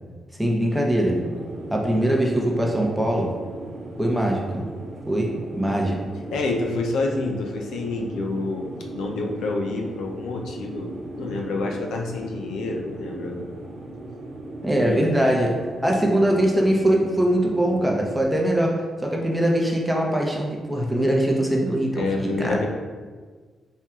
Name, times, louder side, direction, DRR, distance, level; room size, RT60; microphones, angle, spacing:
voice 1, 0.4-1.2 1.7-3.3 4.0-4.7 5.1-6.0 14.6-15.5 15.8-22.7, right 1 dB, 5° right, -1 dB, 0.7 m, -22 dB
sound 1, 1.0-18.2, right 2 dB, 85° right, 0.7 m, -38 dB
voice 2, 6.3-13.5 14.8-15.3 22.0-22.7, left 3 dB, 85° left, 1 dB, 0.5 m, -28 dB
4.4 x 2.4 x 3.5 m, 1.5 s
cardioid pair, 85°, 0 cm